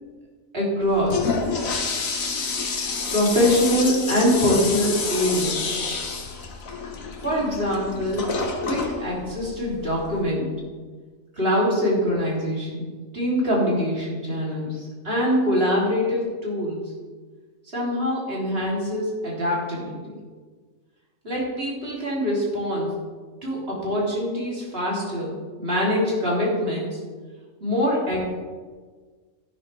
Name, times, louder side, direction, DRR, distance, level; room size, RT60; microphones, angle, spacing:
voice 1, 0.5-1.4 3.1-5.8 7.2-8.3 8.6-10.5 11.3-12.9 13.1-16.9 17.7-20.1 21.2-22.9 23.4-27.0 27.6-28.3, equal, 40° right, -5 dB, 3.3 m, -24 dB
Toilet flush, 0.8-10.2, left 4 dB, 70° left, 1.6 m, -29 dB
11.5 x 11.0 x 3.3 m, 1.5 s
omnidirectional pair, 1.5 m